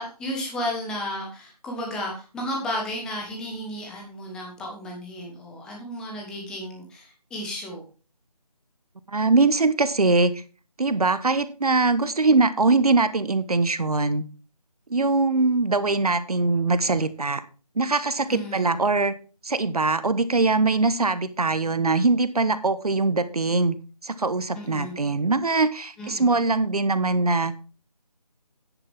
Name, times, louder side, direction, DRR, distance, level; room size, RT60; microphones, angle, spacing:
voice 1, 0.0-7.8 18.3-18.8 24.5-25.0 26.0-26.3, equal, 5° left, 0 dB, 1.2 m, -33 dB
voice 2, 9.1-10.4 10.8-14.2 14.9-17.4 17.8-19.1 19.4-23.7 24.0-27.5, right 3 dB, 65° right, 13 dB, 1.2 m, -22 dB
9.9 x 9.8 x 3.5 m, 0.35 s
figure-of-eight pair, 165°, 20 cm